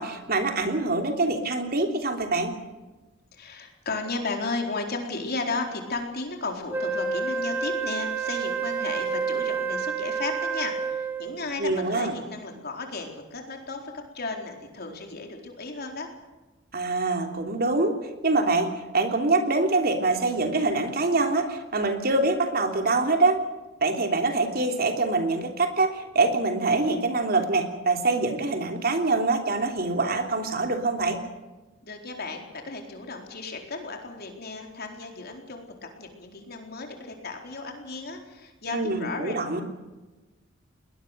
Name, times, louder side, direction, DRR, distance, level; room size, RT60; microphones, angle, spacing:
voice 1, 0.0-2.5 11.6-12.1 16.7-17.9 18.2-23.4 23.8-31.2 38.7-39.6, right 3 dB, 50° right, 4 dB, 3.2 m, -24 dB
voice 2, 3.3-16.1 31.8-39.3, left 3 dB, 55° left, 3 dB, 4.2 m, -34 dB
Wind instrument woodwind instrument, 6.7-11.4, right 5 dB, 10° right, 1.5 m, -29 dB
21.5 x 20.5 x 6.8 m, 1.2 s
head